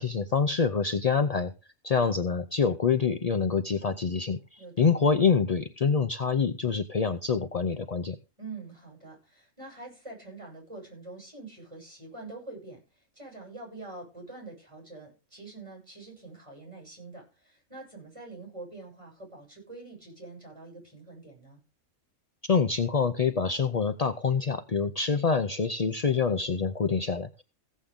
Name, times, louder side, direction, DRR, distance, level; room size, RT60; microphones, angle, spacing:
voice 1, 0.0-1.5 1.8-8.2 22.4-27.4, left 5 dB, 50° left, 9 dB, 0.4 m, -26 dB
voice 2, 4.6-5.1 8.4-21.6, right 3 dB, 20° right, -1 dB, 7.3 m, -45 dB
16.0 x 8.4 x 3.7 m, 0.31 s
omnidirectional pair, 1.5 m